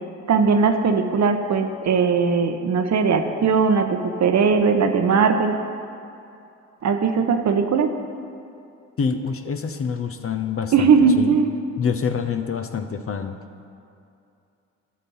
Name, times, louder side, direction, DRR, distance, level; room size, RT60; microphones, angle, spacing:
voice 1, 0.3-5.6 6.8-7.9 10.7-11.5, right 5 dB, 50° right, 6 dB, 1.1 m, -19 dB
voice 2, 9.0-11.4 11.8-13.4, left 6 dB, 40° left, 7 dB, 0.9 m, -26 dB
12.5 x 6.7 x 5.6 m, 2.6 s
hypercardioid pair, 60°, 36 cm